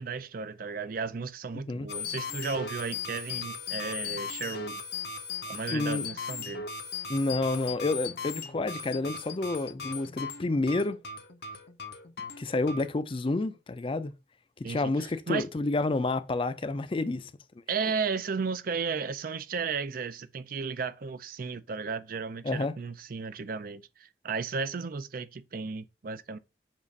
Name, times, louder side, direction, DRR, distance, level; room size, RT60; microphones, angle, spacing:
voice 1, 0.0-4.8 5.5-6.7 14.6-15.5 17.7-26.4, right 5 dB, 50° right, 0.5 m, -34 dB
sound 1, 1.9-12.9, left 5 dB, 65° left, 0.8 m, -38 dB
voice 2, 5.7-6.1 7.1-11.0 12.4-14.1 14.6-17.3 22.4-22.7, left 2 dB, 30° left, 0.4 m, -29 dB
7.3 x 2.5 x 5.3 m
head